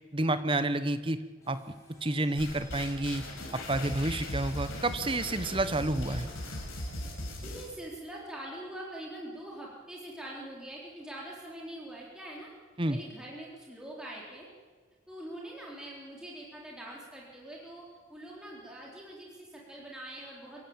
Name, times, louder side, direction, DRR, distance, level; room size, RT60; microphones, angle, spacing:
voice 1, 0.1-1.2 1.5-1.6 2.0-3.2 3.5-6.3 12.8-13.0, right 2 dB, 25° right, 12 dB, 1.0 m, -29 dB
sound 1, 1.4-7.2, left 1 dB, 15° left, 7.0 m, -54 dB
sound 2, 2.4-7.7, left 1 dB, 85° left, 5.0 m, -38 dB
voice 2, 7.4-12.5 12.9-14.5 15.1-20.6, right 1 dB, 5° right, -4 dB, 3.9 m, -44 dB
26.0 x 15.5 x 8.9 m, 1.5 s
head